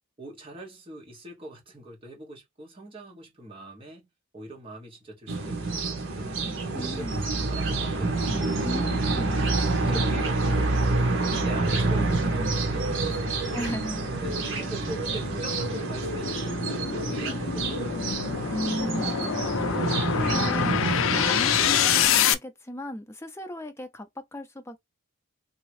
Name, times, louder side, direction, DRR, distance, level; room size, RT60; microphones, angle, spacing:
voice 1, 0.2-4.1 4.3-6.4 6.8-9.3 9.8-10.8 11.4-13.8 14.2-18.5 19.9-20.2, right 2 dB, 25° right, 1.3 m, -43 dB
sound 1, 5.3-22.1, right 2 dB, 60° right, 1.0 m, -27 dB
voice 2, 6.7-7.2 8.6-10.0 13.5-14.0 18.5-24.8, equal, 10° left, 0.5 m, -36 dB
sound 2, 8.4-22.3, left 8 dB, 65° left, 0.4 m, -28 dB
3.0 x 2.7 x 3.0 m
head